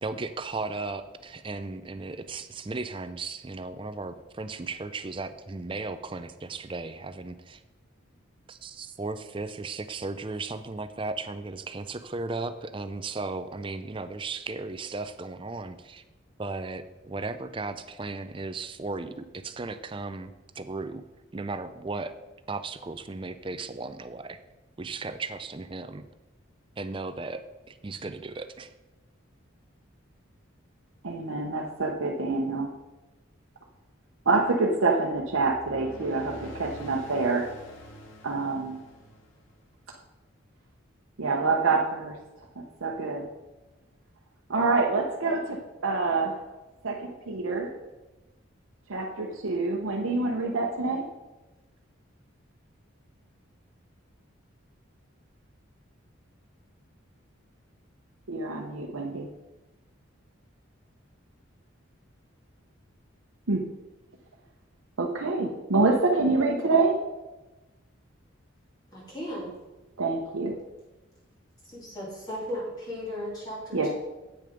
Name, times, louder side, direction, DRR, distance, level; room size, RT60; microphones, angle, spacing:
voice 1, 0.0-7.6 8.5-16.0 16.4-21.0 21.3-22.1 22.5-24.4 24.8-26.0 26.8-28.7, right 3 dB, 25° right, 11 dB, 0.4 m, -36 dB
voice 2, 31.0-32.7 34.3-37.5 38.2-38.8 41.2-42.2 42.8-43.3 44.5-46.4 46.8-47.7 48.9-51.1 58.3-59.3 63.5-63.6 65.0-66.9 70.0-70.6 73.7-73.9, right 3 dB, 85° right, -1 dB, 0.8 m, -26 dB
sound 1, 35.1-39.8, equal, 70° left, 1.5 m, -46 dB
voice 3, 68.9-69.5 71.6-73.9, equal, 20° left, -7 dB, 2.5 m, -36 dB
8.5 x 6.5 x 5.1 m, 1.1 s
head